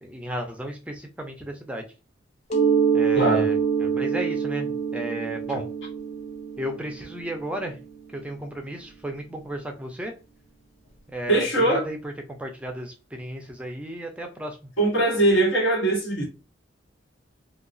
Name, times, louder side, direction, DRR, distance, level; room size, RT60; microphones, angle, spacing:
voice 1, 0.0-1.8 2.9-5.7 6.6-7.8 8.1-10.1 11.1-12.1 12.4-14.6, right 1 dB, 5° right, 3 dB, 0.4 m, -34 dB
Mallet percussion, 2.5-8.0, right 6 dB, 40° left, 0.7 m, -25 dB
voice 2, 3.1-3.5 11.3-11.8 14.8-16.2, right 2 dB, 80° left, -2 dB, 1.4 m, -21 dB
2.8 x 2.3 x 2.5 m, 0.31 s
head